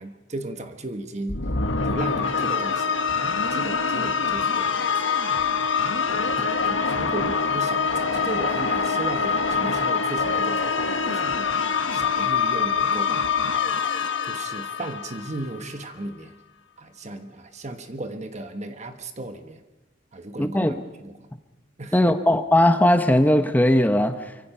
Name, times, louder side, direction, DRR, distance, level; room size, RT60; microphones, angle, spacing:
voice 1, 0.0-1.4 1.8-3.0 3.3-4.9 6.4-11.4 11.9-13.5 14.2-16.3 16.8-19.6 20.1-21.3 21.8-22.1, right 2 dB, 35° right, 7 dB, 1.3 m, -35 dB
sound 1, 1.3-15.7, left 5 dB, 85° left, 1.6 m, -24 dB
voice 2, 20.4-20.7 21.9-24.3, left 1 dB, 10° left, 8 dB, 1.1 m, -19 dB
25.0 x 24.5 x 5.7 m, 1.1 s
head